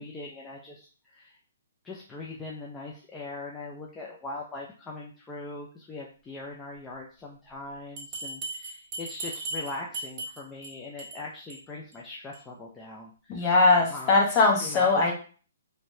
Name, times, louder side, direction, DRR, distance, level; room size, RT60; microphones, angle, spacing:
voice 1, 0.0-1.4 1.8-13.5 13.9-14.1 14.6-14.9, left 2 dB, 15° left, -2 dB, 0.5 m, -41 dB
Bell, 8.0-10.7 11.0-11.2 11.5-11.6 11.9-12.0 12.3-12.4, right 2 dB, 25° right, 1.5 m, -36 dB
voice 2, 13.3-15.1, left 3 dB, 30° left, -1 dB, 1.2 m, -21 dB
3.1 x 3.0 x 2.7 m, 0.39 s
hypercardioid pair, 145°, 0 cm